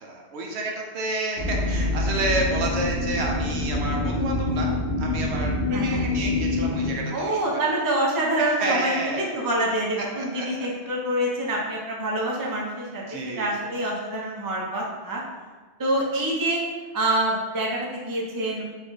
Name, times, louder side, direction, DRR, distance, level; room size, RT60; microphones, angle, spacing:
voice 1, 0.0-4.7 5.0-7.6 8.4-9.3 10.1-10.7 13.1-13.5, right 2 dB, 75° right, 0 dB, 0.9 m, -30 dB
sound 1, 1.4-6.9, left 2 dB, 70° left, 1.3 m, -26 dB
voice 2, 5.7-6.1 7.1-15.2 15.8-16.6 16.9-18.6, right 1 dB, 25° right, -3 dB, 0.5 m, -26 dB
4.0 x 2.4 x 3.9 m, 1.4 s
omnidirectional pair, 1.2 m